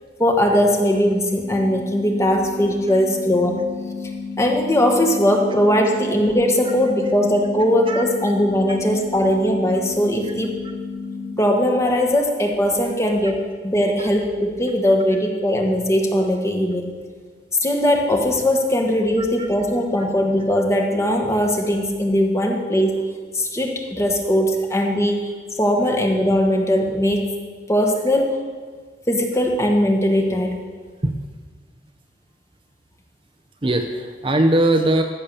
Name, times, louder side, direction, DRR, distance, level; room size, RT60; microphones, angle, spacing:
voice 1, 0.2-3.6 4.4-10.5 11.4-16.9 17.6-23.0 23.3-25.3 25.6-27.3 27.7-28.4 29.1-30.6, equal, 15° left, 2 dB, 1.3 m, -19 dB
sound 1, 1.3-11.3, left 4 dB, 60° left, 2.7 m, -32 dB
voice 2, 33.6-35.0, right 1 dB, 30° right, 5 dB, 0.6 m, -20 dB
14.5 x 6.7 x 6.9 m, 1.5 s
head